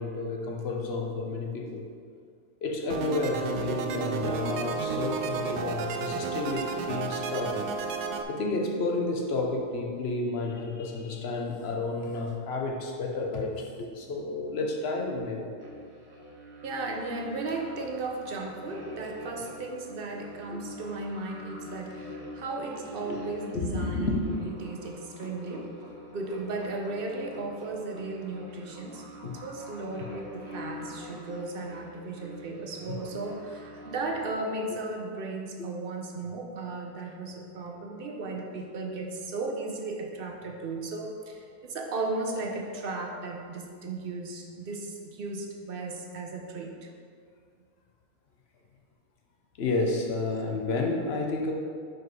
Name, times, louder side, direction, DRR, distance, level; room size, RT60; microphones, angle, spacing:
voice 1, 0.0-1.9 2.6-7.6 8.3-15.5 20.5-20.6 23.1-23.2 23.5-24.5 25.2-25.3 29.2-29.4 35.6-35.7 49.6-51.5, left 3 dB, 50° left, 1 dB, 0.9 m, -31 dB
sound 1, 2.9-8.2, right 6 dB, 80° right, 1.1 m, -32 dB
sound 2, 15.6-34.3, equal, 15° right, 1.1 m, -45 dB
voice 2, 16.6-24.1 24.4-25.7 26.1-46.8, right 3 dB, 50° right, 2 dB, 0.7 m, -35 dB
6.2 x 5.0 x 4.8 m, 2.1 s
omnidirectional pair, 1.7 m